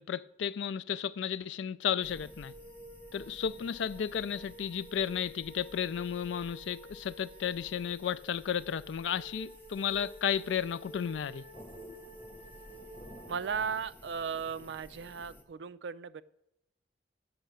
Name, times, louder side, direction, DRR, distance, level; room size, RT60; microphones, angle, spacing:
voice 1, 0.0-2.5 3.1-11.5, left 8 dB, 85° left, 0.4 m, -33 dB
sound 1, 1.8-13.6, right 1 dB, 30° right, 1.9 m, -52 dB
sound 2, 2.0-15.4, left 1 dB, 10° left, 1.0 m, -54 dB
voice 2, 13.3-16.2, right 6 dB, 75° right, 0.4 m, -36 dB
7.4 x 5.8 x 6.7 m
head